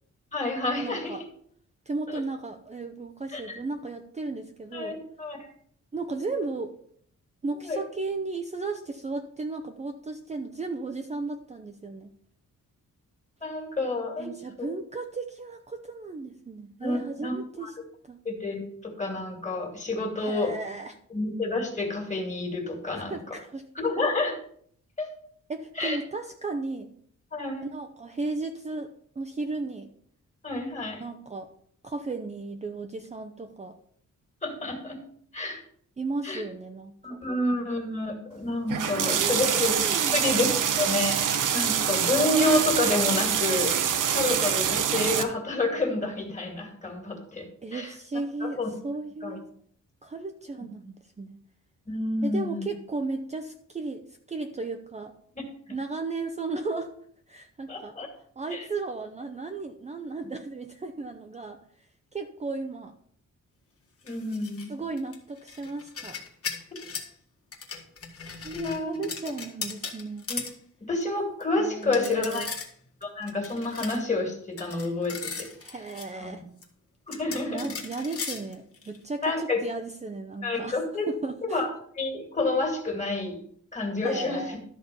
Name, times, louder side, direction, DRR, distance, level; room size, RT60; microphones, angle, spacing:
voice 1, 0.3-1.2 2.1-2.2 3.3-3.6 4.7-5.5 7.7-7.8 13.4-14.3 14.6-14.7 16.8-17.3 17.6-17.7 18.3-20.5 21.1-23.2 23.8-24.4 25.0-25.1 25.8-26.0 27.3-27.7 30.4-31.0 34.4-35.0 35.3-35.6 36.2-36.4 37.0-39.7 40.1-40.5 40.7-41.2 41.5-43.8 44.1-47.9 48.4-48.7 49.2-49.4 51.9-52.6 55.4-55.5 57.7-58.1 58.5-58.7 64.0-64.7 66.7-66.8 68.5-68.9 70.3-70.4 70.9-72.5 73.0-75.5 76.2-76.4 77.1-77.7 79.2-79.6 80.4-81.1 81.5-83.4 83.7-84.6, left 2 dB, 25° left, 2 dB, 2.3 m, -29 dB
voice 2, 0.8-1.2 1.9-5.0 5.9-6.7 7.4-12.1 14.2-17.7 18.0-18.2 20.2-21.0 22.8-23.6 25.5-26.9 27.7-29.9 31.0-31.5 31.8-33.8 36.0-37.2 38.7-39.4 39.7-40.7 47.6-49.5 50.0-51.4 52.2-54.0 54.3-55.1 55.7-57.0 57.3-57.9 58.4-61.9 62.1-62.9 64.7-66.2 68.4-70.3 71.6-72.5 75.6-76.4 77.5-80.8 81.1-81.6 84.0-84.6, right 3 dB, 20° right, 5 dB, 0.6 m, -35 dB
sound 1, 38.7-45.2, right 8 dB, 85° right, 0.9 m, -25 dB
sound 2, 64.0-64.7 65.0-67.1 67.5-70.6 71.0-71.1 71.4-71.5 71.8-72.7 73.0-74.0 74.6-76.1 76.6-76.7 77.1-79.0, left 5 dB, 45° left, 1.8 m, -37 dB
12.5 x 4.3 x 6.8 m, 0.63 s
wide cardioid pair, 165°, 31 cm